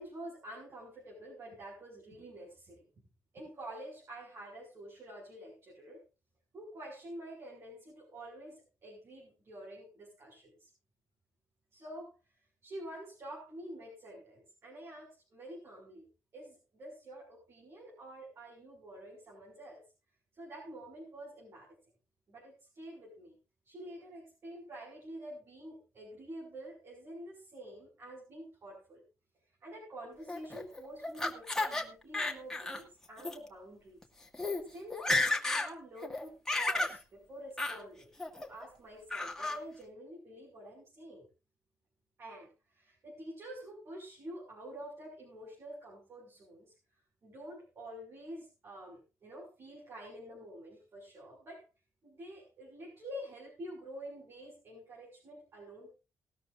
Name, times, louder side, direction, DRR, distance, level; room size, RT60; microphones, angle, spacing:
voice 1, 0.0-2.8 3.3-6.0 6.5-10.7 11.7-12.1 12.6-16.0 16.3-19.8 20.3-21.8 22.3-23.4 23.6-29.0 29.6-34.0 34.7-38.1 38.4-41.3 42.2-46.7 47.2-51.7 52.0-55.9, right 1 dB, 50° right, -2 dB, 6.4 m, -48 dB
Laughter, 30.3-31.8 32.1-32.8 33.2-33.3 34.0-34.1 34.3-34.6 34.9-35.7 36.0-37.0 37.6-37.8 38.2-38.7 39.1-39.6, left 2 dB, 10° left, 2.0 m, -32 dB
19.0 x 13.0 x 2.6 m, 0.31 s
cardioid pair, 130°, 6 cm